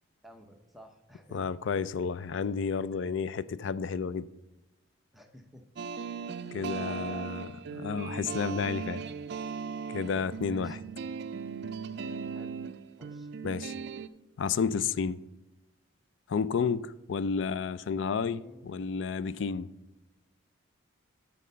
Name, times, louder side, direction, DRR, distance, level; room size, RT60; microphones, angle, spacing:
voice 1, 0.2-1.4 5.1-5.6 6.4-7.5 10.4-10.8 11.9-12.6 13.0-13.3 18.3-18.7, equal, ahead, 0.7 m, -53 dB
voice 2, 1.3-4.3 6.5-7.5 7.8-9.0 9.9-10.8 13.4-13.7 14.4-15.2 16.3-19.7, left 5 dB, 65° left, 0.3 m, -31 dB
sound 1, 5.8-14.1, right 6 dB, 55° right, 0.3 m, -38 dB
12.5 x 4.2 x 5.5 m
head